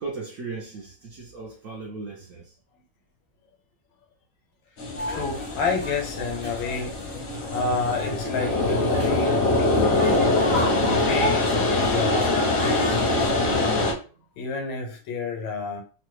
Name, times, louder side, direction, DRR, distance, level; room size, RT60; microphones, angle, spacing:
voice 1, 0.0-2.5, right 4 dB, 70° right, 0.8 m, -37 dB
sound 1, 4.8-13.9, left 2 dB, 60° left, 0.9 m, -24 dB
sound 2, 5.0-13.3, left 1 dB, 10° left, 0.7 m, -33 dB
voice 2, 5.1-7.0 7.5-10.2 10.8-13.8 14.4-15.8, left 4 dB, 90° left, 1.5 m, -30 dB
3.3 x 2.2 x 3.0 m
omnidirectional pair, 2.1 m